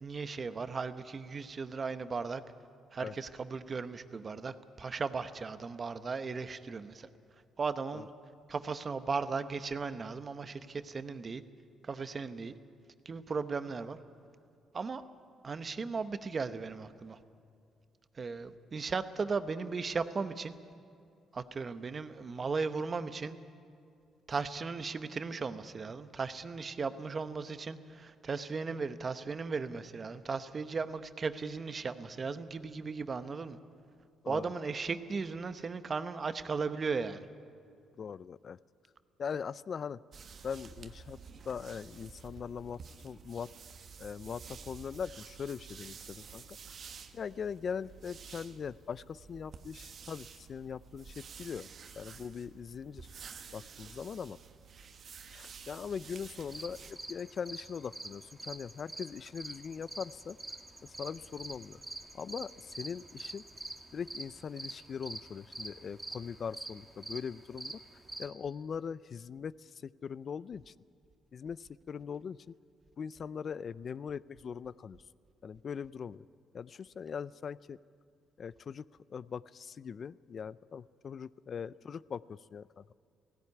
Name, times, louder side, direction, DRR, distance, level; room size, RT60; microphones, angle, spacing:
voice 1, 0.0-2.4 2.9-7.1 7.6-8.1 8.5-11.4 11.8-12.5 13.0-14.0 14.7-15.0 15.4-17.2 18.1-20.5 21.3-23.4 24.3-33.6 34.3-37.2, right 4 dB, 40° right, 11 dB, 0.9 m, -36 dB
voice 2, 38.0-38.6 39.2-40.0 40.4-41.2 41.5-43.5 44.0-46.8 47.1-51.7 52.0-53.1 53.5-54.4 55.3-60.4 60.8-61.8 62.1-63.4 63.9-67.8 68.2-70.7 71.3-72.5 73.0-75.0 75.4-76.2 76.5-77.8 78.4-78.8 79.1-82.9, left 6 dB, 50° left, 19 dB, 0.4 m, -41 dB
sound 1, 40.1-56.9, right 6 dB, 55° right, 1.3 m, -51 dB
sound 2, 56.4-68.3, right 2 dB, 15° right, 1.6 m, -46 dB
16.5 x 16.5 x 9.6 m, 2.4 s
cardioid pair, 90°, 0 cm